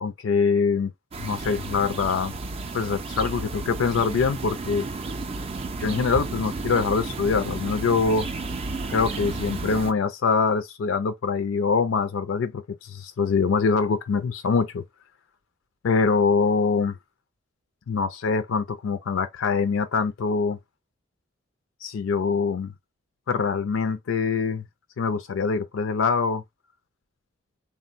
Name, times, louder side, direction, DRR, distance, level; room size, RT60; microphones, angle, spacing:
voice 1, 0.0-0.9 1.2-2.3 2.7-4.9 5.8-8.3 8.9-14.8 15.8-17.0 17.9-20.6 21.8-22.7 23.3-24.6 25.0-26.4, left 5 dB, 75° left, 0.4 m, -24 dB
sound 1, 1.1-9.9, right 3 dB, 30° right, 0.4 m, -32 dB
3.5 x 2.1 x 2.5 m
head